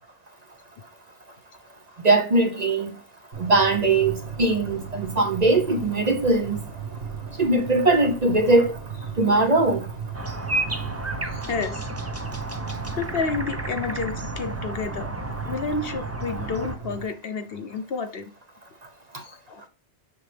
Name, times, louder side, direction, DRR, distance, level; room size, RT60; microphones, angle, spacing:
voice 1, 2.0-3.0 3.4-6.6 7.4-8.8 9.2-9.9 19.1-19.2, right 2 dB, 40° right, 0.9 m, -20 dB
sound 1, 3.3-17.0, right 6 dB, 55° right, 1.7 m, -36 dB
sound 2, 10.1-16.8, right 2 dB, 15° right, 0.6 m, -32 dB
voice 2, 11.2-11.9 12.9-15.1 15.4-18.2 19.2-19.6, left 4 dB, 60° left, 1.0 m, -30 dB
6.9 x 6.4 x 3.4 m
omnidirectional pair, 1.2 m